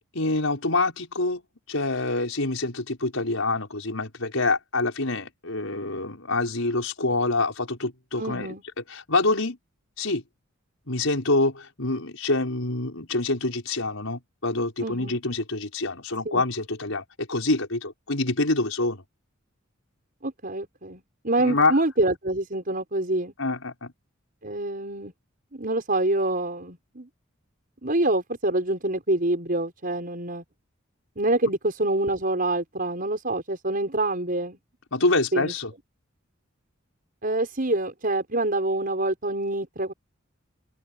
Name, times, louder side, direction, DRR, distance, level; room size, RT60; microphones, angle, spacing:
voice 1, 0.1-1.4 1.7-8.5 8.9-9.6 10.0-10.2 10.9-19.0 21.4-21.8 23.4-23.9 34.9-35.7, left 2 dB, 80° left, 5.5 m, -26 dB
voice 2, 8.2-8.6 14.8-15.2 16.2-16.4 20.2-23.3 24.4-25.1 25.5-27.1 27.8-30.4 31.2-34.6 35.3-35.5 37.2-39.9, right 2 dB, 45° right, 6.2 m, -26 dB
open air
head